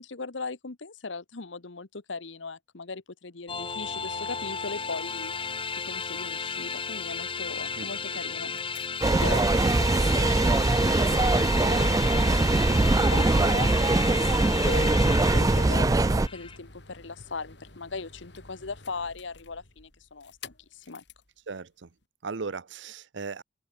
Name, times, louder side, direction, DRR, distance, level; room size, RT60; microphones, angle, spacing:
voice 1, 0.0-5.3 5.7-8.5 9.2-12.6 13.1-21.0, left 4 dB, 85° left, 1.2 m, -39 dB
sound 1, 3.5-16.6, left 5 dB, 30° left, 1.9 m, -34 dB
voice 2, 7.8-8.2 21.5-21.9 22.2-23.4, right 4 dB, 75° right, 0.7 m, -37 dB
sound 2, 8.3-21.3 22.0-22.1, left 2 dB, 65° left, 5.0 m, -49 dB
sound 3, 9.0-16.3, right 2 dB, 20° right, 0.4 m, -22 dB
head